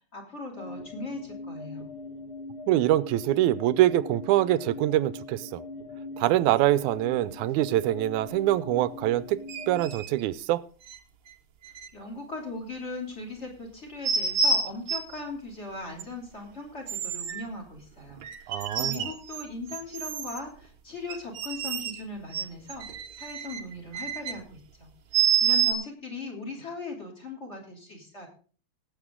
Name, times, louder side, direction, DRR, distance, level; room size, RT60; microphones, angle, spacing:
voice 1, 0.1-1.9 11.9-22.9 23.1-28.3, left 3 dB, 20° left, 3.2 m, -39 dB
sound 1, 0.5-9.9, left 2 dB, 75° left, 3.4 m, -41 dB
voice 2, 2.7-5.6 6.2-9.4 9.7-10.6 18.5-19.1, right 14 dB, 90° right, 2.1 m, -24 dB
sound 2, 9.5-10.1 10.9-11.0 11.7-11.9 14.0-15.2 16.0-16.1 16.9-17.4 18.2-19.4 19.7-20.4 21.1-22.0 22.3-24.3 25.1-25.7, right 6 dB, 60° right, 1.3 m, -28 dB
18.0 x 8.1 x 3.7 m
omnidirectional pair, 3.3 m